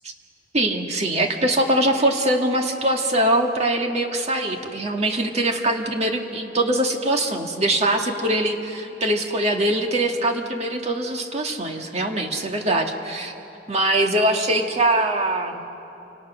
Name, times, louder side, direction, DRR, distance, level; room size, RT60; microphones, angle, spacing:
voice 1, 0.5-13.3 13.7-15.7, right 1 dB, 40° right, 3 dB, 1.9 m, -22 dB
28.0 x 26.0 x 6.3 m, 2.9 s
head